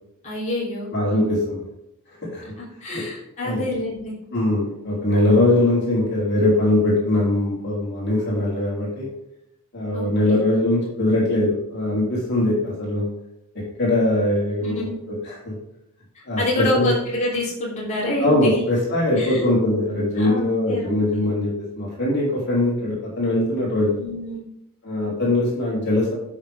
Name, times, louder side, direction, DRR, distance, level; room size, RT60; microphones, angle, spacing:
voice 1, 0.2-1.3 2.6-4.1 9.9-10.4 14.6-15.0 16.1-18.6 19.2-19.5 20.2-20.9 21.1-21.3 23.9-24.4, left 1 dB, 35° left, -7 dB, 3.5 m, -27 dB
voice 2, 0.9-1.6 2.3-2.4 2.9-3.0 3.4-3.6 4.3-9.1 9.7-13.1 13.5-15.6 16.2-16.9 18.2-23.9 24.8-26.1, left 1 dB, 55° left, -5 dB, 3.3 m, -21 dB
11.0 x 6.1 x 3.5 m, 0.84 s
head